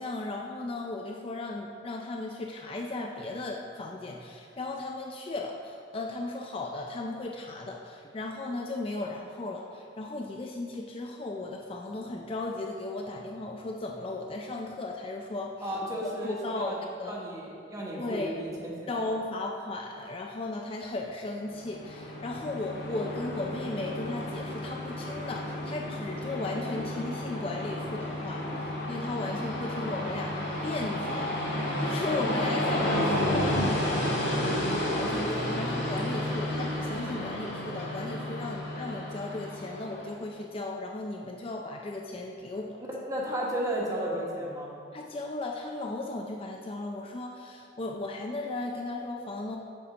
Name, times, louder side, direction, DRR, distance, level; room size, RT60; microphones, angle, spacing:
voice 1, 0.0-15.7 16.2-17.2 18.0-18.3 18.9-31.3 31.8-42.8 44.9-49.6, left 2 dB, 30° left, 1 dB, 0.4 m, -36 dB
voice 2, 15.6-16.4 16.6-19.0 42.9-44.7, right 1 dB, 20° right, -4 dB, 1.1 m, -33 dB
Train, 21.5-40.1, left 1 dB, 60° left, 1.9 m, -32 dB
6.7 x 4.3 x 6.3 m, 2.4 s
head